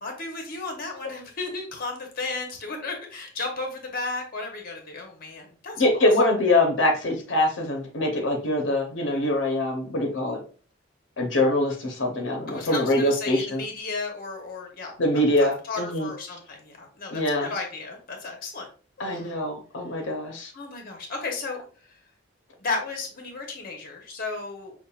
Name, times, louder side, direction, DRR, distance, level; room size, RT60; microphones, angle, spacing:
voice 1, 0.0-6.1 12.5-14.9 15.4-18.7 19.0-19.4 20.5-21.7 22.6-24.7, left 3 dB, 50° left, 2 dB, 0.9 m, -34 dB
voice 2, 5.8-10.4 11.2-13.6 15.0-16.1 17.1-17.5 19.0-20.5, left 1 dB, 85° left, 1 dB, 0.8 m, -24 dB
5.5 x 2.4 x 2.3 m, 0.39 s
head